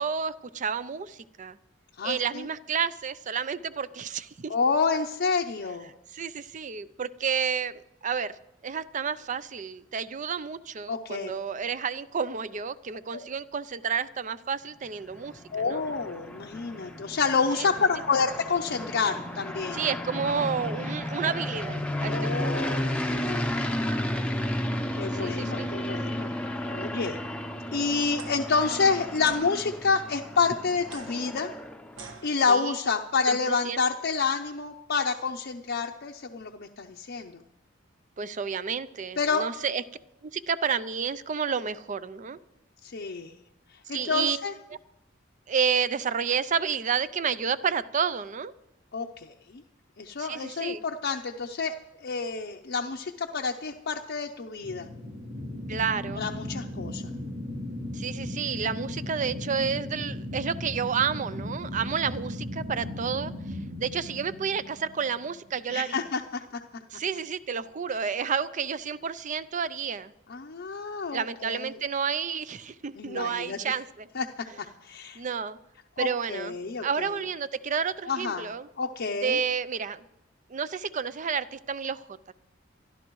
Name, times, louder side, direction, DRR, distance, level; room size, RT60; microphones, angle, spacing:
voice 1, 0.0-1.6 2.0-4.6 6.1-7.7 8.0-8.4 8.6-15.8 17.6-17.7 19.7-22.7 25.1-25.7 32.5-32.7 33.3-33.8 38.2-39.8 40.2-42.4 43.9-44.4 45.5-48.5 50.2-50.8 55.7-56.2 57.9-63.3 63.8-66.0 66.9-70.1 71.1-74.1 75.2-75.6 76.0-76.6 76.8-78.7 79.2-80.0 80.5-82.3, right 6 dB, 40° right, 15 dB, 0.5 m, -30 dB
voice 2, 2.0-2.5 4.5-5.9 10.9-11.3 13.1-13.3 15.5-19.8 22.0-23.8 24.9-26.3 26.7-27.2 27.7-31.5 32.2-37.4 39.2-39.5 42.8-43.4 43.9-44.5 48.9-49.6 50.0-51.7 52.0-54.9 56.2-57.0 65.7-66.2 70.3-71.7 73.0-73.7 74.1-74.3 74.6-75.2 76.0-77.1 78.1-78.5 78.8-79.4, left 4 dB, 55° left, 1 dB, 0.6 m, -28 dB
sound 1, 14.9-32.1, left 1 dB, 5° left, 0.7 m, -33 dB
sound 2, 28.1-28.3 29.2-29.5 30.8-32.8, right 3 dB, 70° right, 1.5 m, -46 dB
sound 3, 54.6-65.5, left 1 dB, 90° right, 2.9 m, -37 dB
24.0 x 12.5 x 3.1 m, 0.86 s
head